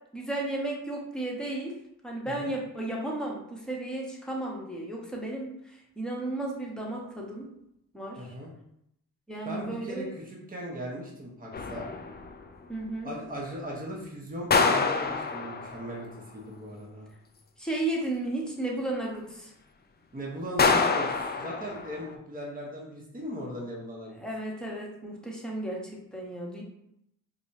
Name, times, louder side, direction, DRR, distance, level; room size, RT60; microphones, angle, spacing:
voice 1, 0.1-1.7 2.0-7.5 7.9-8.3 9.3-10.1 12.7-13.1 17.6-19.5 24.2-26.6, right 2 dB, ahead, -3 dB, 1.1 m, -34 dB
voice 2, 8.2-8.5 9.4-11.9 13.0-16.1 16.3-17.1 20.1-24.1, equal, 20° right, -2 dB, 1.1 m, -38 dB
sound 1, 11.5-12.4 14.5-16.0 20.6-22.1, left 4 dB, 25° left, 0.4 m, -26 dB
4.8 x 2.3 x 2.8 m, 0.77 s
cardioid pair, 65°, 38 cm